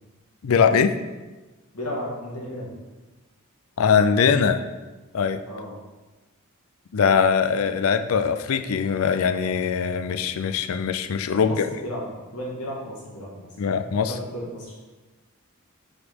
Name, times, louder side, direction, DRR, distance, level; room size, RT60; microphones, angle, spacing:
voice 1, 0.4-1.0 3.8-4.6 5.1-5.4 6.9-11.7 13.6-14.1, left 6 dB, 65° left, 9 dB, 0.4 m, -21 dB
voice 2, 1.7-2.7 5.5-5.8 11.4-13.5 14.1-14.7, equal, 90° left, -3 dB, 2.0 m, -34 dB
5.8 x 4.0 x 5.3 m, 1.2 s
head